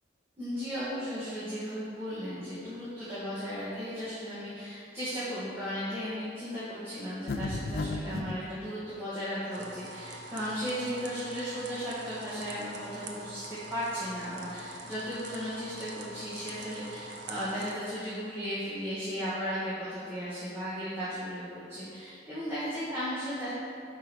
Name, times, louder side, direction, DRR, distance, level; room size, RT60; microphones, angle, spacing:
voice 1, 0.4-23.5, equal, 15° right, -12 dB, 1.5 m, -36 dB
sound 1, 7.3-8.4, left 3 dB, 55° left, 0.4 m, -33 dB
sound 2, 9.5-17.7, right 2 dB, 75° right, 0.7 m, -45 dB
6.0 x 4.7 x 4.5 m, 2.5 s
head